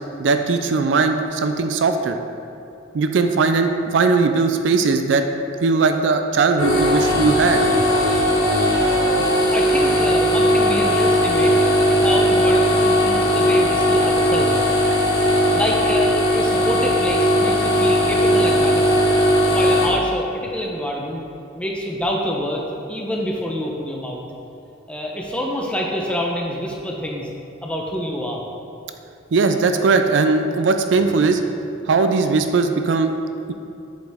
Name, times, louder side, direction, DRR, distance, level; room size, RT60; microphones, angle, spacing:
voice 1, 0.2-2.2 2.9-5.2 5.6-7.9 29.3-31.4 31.9-33.1, right 4 dB, 65° right, 7 dB, 0.4 m, -19 dB
sound 1, 6.6-19.9, equal, 85° left, 1.2 m, -18 dB
voice 2, 9.5-11.6 11.9-14.6 15.5-18.9 19.5-21.2 21.5-22.6 22.9-24.2 24.9-27.3 27.6-28.4, equal, 5° left, -1 dB, 0.6 m, -26 dB
7.6 x 5.0 x 3.5 m, 2.7 s
head